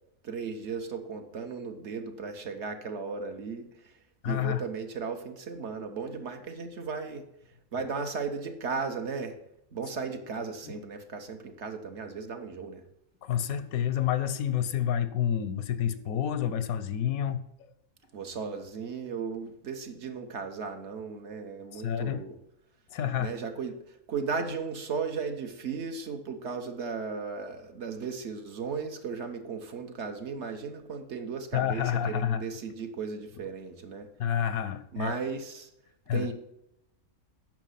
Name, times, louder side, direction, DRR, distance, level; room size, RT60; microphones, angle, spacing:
voice 1, 0.2-3.9 4.2-7.2 7.7-9.4 9.7-12.8 18.1-22.4 23.2-34.1 34.9-35.7 36.1-36.3, right 5 dB, 55° right, 6 dB, 1.2 m, -36 dB
voice 2, 4.2-4.6 13.2-17.4 21.7-22.3 22.9-23.3 31.5-32.4 34.2-35.1 36.1-36.3, left 9 dB, 85° left, 12 dB, 1.2 m, -29 dB
9.1 x 5.9 x 5.7 m, 0.81 s
omnidirectional pair, 1.5 m